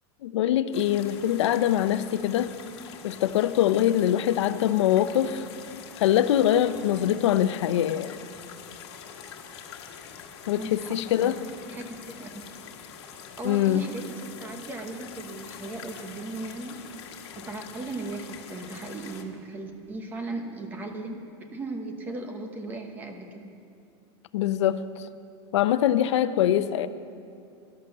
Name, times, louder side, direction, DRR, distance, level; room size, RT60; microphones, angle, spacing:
voice 1, 0.2-2.5 3.0-5.5 6.0-8.2 10.5-11.4 13.4-13.9 24.3-25.0 25.5-26.9, left 11 dB, 85° left, 13 dB, 0.6 m, -23 dB
sound 1, 0.7-19.2, left 7 dB, 65° left, 1.5 m, -45 dB
voice 2, 10.6-11.4 11.7-12.3 13.4-23.5, right 2 dB, 15° right, 4 dB, 0.9 m, -37 dB
12.0 x 11.5 x 6.6 m, 2.6 s
supercardioid pair, 175°, 14 cm